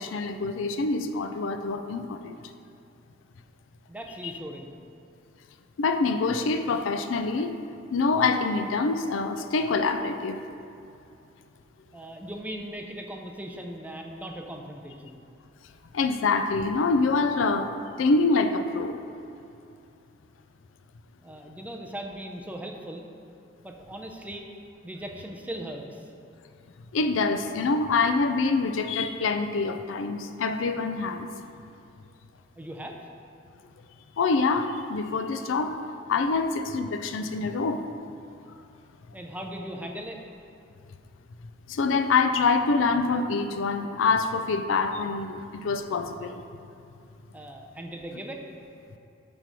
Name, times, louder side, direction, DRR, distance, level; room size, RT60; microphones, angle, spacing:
voice 1, 0.0-2.4 5.8-7.6 7.9-10.4 15.9-17.7 18.0-19.0 26.9-31.3 34.2-35.8 36.1-37.8 41.7-46.4, left 4 dB, 80° left, 8 dB, 0.4 m, -25 dB
voice 2, 3.9-4.7 11.9-15.2 21.2-23.1 23.6-24.5 24.8-26.1 32.6-33.0 39.1-40.2 47.3-48.4, right 1 dB, 10° right, 2 dB, 0.5 m, -38 dB
5.9 x 5.2 x 4.7 m, 2.6 s
head